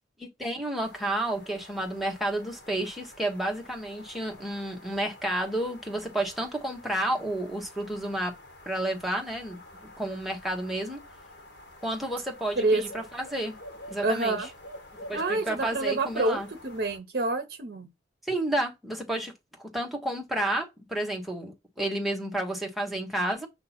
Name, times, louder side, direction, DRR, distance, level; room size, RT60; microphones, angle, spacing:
voice 1, 0.4-8.3 8.6-9.6 10.0-11.0 11.8-13.5 13.9-14.4 15.1-16.5 18.3-19.3 19.7-23.5, right 1 dB, ahead, 1.2 m, -31 dB
sound 1, 0.8-17.0, left 1 dB, 70° left, 1.7 m, -48 dB
voice 2, 14.0-14.5 15.1-17.9, right 2 dB, 60° right, 0.7 m, -27 dB
6.9 x 2.9 x 5.7 m
head